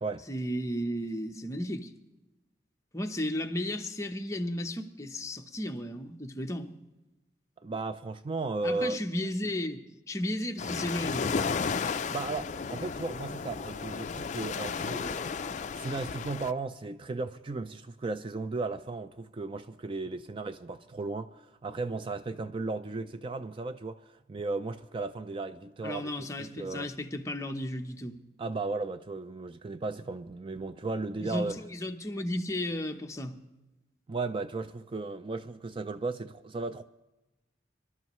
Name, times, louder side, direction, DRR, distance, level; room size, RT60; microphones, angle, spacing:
voice 1, 0.3-1.9 2.9-6.7 8.6-11.3 25.8-28.2 31.2-33.4, left 1 dB, 15° left, 0.8 m, -34 dB
voice 2, 7.6-9.0 12.1-15.4 15.7-26.9 28.4-31.6 34.1-36.8, right 3 dB, 30° right, 0.4 m, -35 dB
sound 1, 10.6-16.5, left 5 dB, 40° left, 0.4 m, -33 dB
25.5 x 12.5 x 3.1 m
head